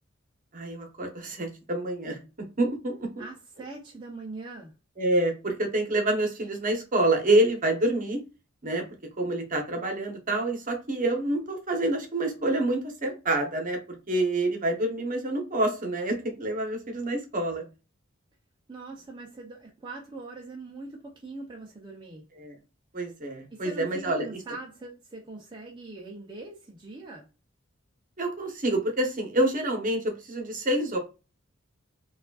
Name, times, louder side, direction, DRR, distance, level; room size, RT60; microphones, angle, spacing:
voice 1, 0.5-2.2 2.6-3.2 5.0-8.2 8.6-8.8 9.2-13.8 14.1-17.6 22.4-22.5 22.9-24.3 28.2-31.0, right 1 dB, 40° right, 1.0 m, -27 dB
voice 2, 3.2-4.7 18.7-22.2 23.5-27.3, right 2 dB, 25° right, 0.6 m, -42 dB
4.8 x 2.5 x 2.4 m
head